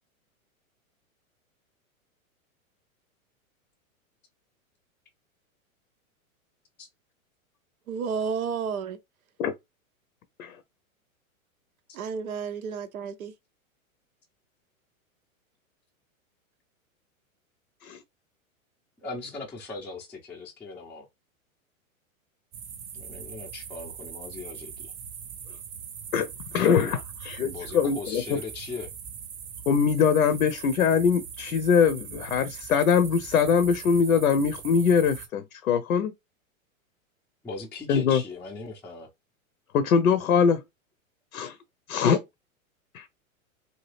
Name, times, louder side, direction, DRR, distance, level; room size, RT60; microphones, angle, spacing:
voice 1, 7.9-9.0 11.9-13.3, right 6 dB, 90° right, 0.6 m, -31 dB
voice 2, 19.0-21.1 22.9-24.9 27.4-28.9 37.4-39.1, left 4 dB, 5° left, 0.4 m, -39 dB
sound 1, 22.5-35.3, right 7 dB, 35° right, 0.6 m, -41 dB
voice 3, 26.1-28.4 29.7-36.1 37.9-38.2 39.7-40.6 41.3-41.6 41.9-42.2 42.9-43.1, left 6 dB, 85° left, 0.6 m, -23 dB
2.8 x 2.3 x 3.2 m
hypercardioid pair, 120°, 42 cm